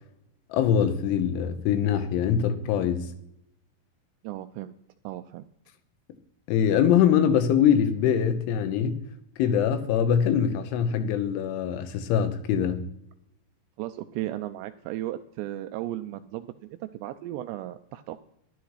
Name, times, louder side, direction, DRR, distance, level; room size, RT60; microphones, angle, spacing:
voice 1, 0.5-3.1 6.5-9.0 9.4-12.9, left 8 dB, 85° left, 3.4 m, -23 dB
voice 2, 4.2-4.8 5.0-5.5 13.8-18.2, right 14 dB, 85° right, 2.5 m, -35 dB
11.5 x 10.5 x 4.7 m
omnidirectional pair, 5.4 m